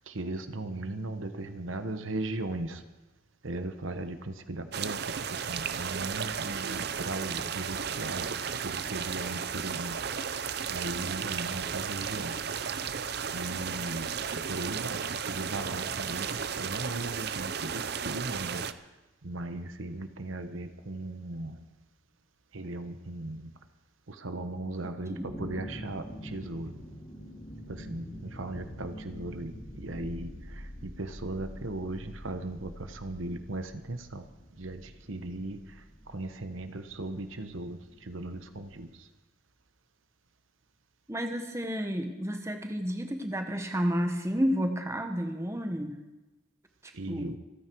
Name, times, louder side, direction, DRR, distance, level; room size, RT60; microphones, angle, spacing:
voice 1, 0.1-2.8 3.4-5.0 5.3-8.3 8.6-10.0 10.7-12.3 13.3-14.1 14.5-18.6 19.2-21.6 22.5-23.5 24.2-26.1 26.3-26.7 27.9-29.5 29.8-30.3 30.8-34.2 34.6-34.8 35.1-35.6 36.1-37.8 38.1-38.9 47.0-47.4, right 2 dB, 75° right, 9 dB, 1.1 m, -37 dB
sound 1, 4.7-18.7, right 7 dB, 50° right, 0.6 m, -34 dB
voice 2, 24.8-25.3 41.1-46.0 46.8-47.3, equal, 15° right, 5 dB, 1.2 m, -31 dB
sound 2, 25.2-38.8, equal, 25° left, 3.2 m, -46 dB
26.5 x 9.6 x 4.7 m, 1.1 s
head